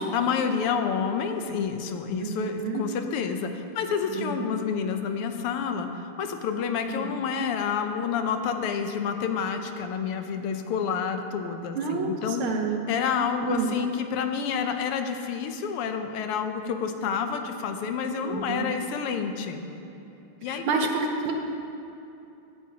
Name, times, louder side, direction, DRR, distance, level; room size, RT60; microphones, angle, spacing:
voice 1, 0.1-5.9 6.2-12.5 12.9-19.7 20.4-20.9, left 6 dB, 90° left, 6 dB, 1.7 m, -29 dB
voice 2, 2.2-2.8 4.1-4.6 6.9-7.1 11.8-12.8 13.4-13.7 18.2-18.7 20.5-21.3, right 4 dB, 75° right, 3 dB, 1.7 m, -29 dB
15.5 x 9.3 x 2.8 m, 2.8 s
omnidirectional pair, 2.4 m